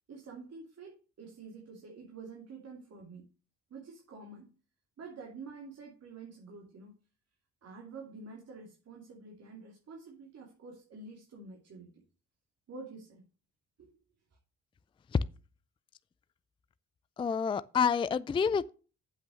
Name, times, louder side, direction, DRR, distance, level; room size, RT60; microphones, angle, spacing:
voice 1, 0.1-3.3 3.7-4.5 5.0-6.9 7.6-12.0 12.7-13.2 13.8-13.9, right 4 dB, 55° right, 2.8 m, -48 dB
voice 2, 17.2-18.7, left 6 dB, 15° left, 0.4 m, -28 dB
7.8 x 5.8 x 6.3 m
cardioid pair, 90°, 30 cm